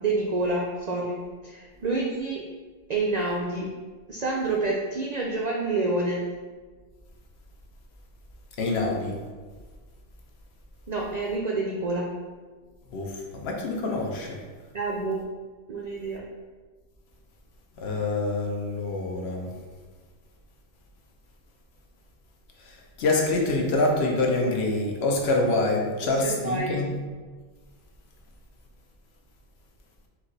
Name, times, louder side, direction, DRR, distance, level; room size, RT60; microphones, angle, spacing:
voice 1, 0.0-2.4 2.9-3.7 4.1-6.3 10.9-12.1 14.7-15.2 15.7-16.2 26.2-26.8, right 2 dB, 65° right, -2 dB, 0.4 m, -28 dB
voice 2, 8.6-9.2 12.9-14.4 17.8-19.5 22.6-26.9, left 2 dB, 65° left, 0 dB, 0.9 m, -26 dB
4.5 x 2.4 x 3.9 m, 1.4 s
omnidirectional pair, 1.2 m